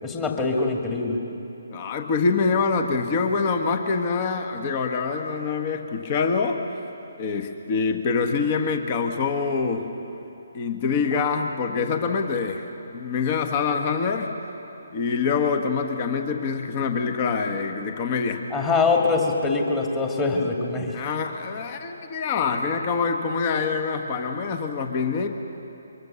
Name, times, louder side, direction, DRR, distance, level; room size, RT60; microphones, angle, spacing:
voice 1, 0.0-1.2 18.5-21.0, left 3 dB, 15° left, 1 dB, 2.4 m, -23 dB
voice 2, 1.7-6.6 7.2-9.9 10.5-14.3 14.9-18.4 20.9-25.3, left 5 dB, 30° left, 6 dB, 1.4 m, -25 dB
23.5 x 23.0 x 6.9 m, 2.8 s
figure-of-eight pair, 140°, 0 cm